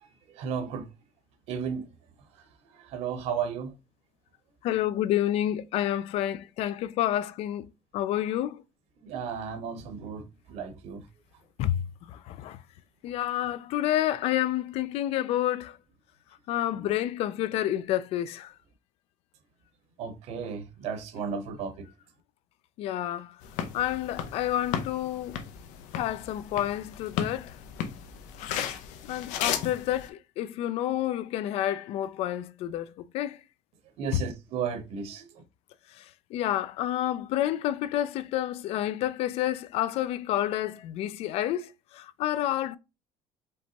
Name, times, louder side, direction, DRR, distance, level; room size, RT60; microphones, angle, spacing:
voice 1, 0.3-0.8 1.5-1.9 2.4-2.5 2.7-3.7 9.0-11.1 16.7-16.9 20.0-21.9 34.0-35.4, right 6 dB, 60° right, 0.9 m, -34 dB
voice 2, 4.6-8.6 11.6-11.8 12.1-12.6 13.0-15.8 16.5-18.5 22.8-23.3 23.7-25.4 25.9-27.6 29.0-33.4 34.1-34.2 36.0-36.1 36.3-42.8, left 12 dB, 55° left, 0.4 m, -29 dB
sound 1, 23.4-30.1, left 9 dB, 85° left, 0.8 m, -35 dB
5.3 x 3.3 x 2.9 m
cardioid pair, 175°, 12 cm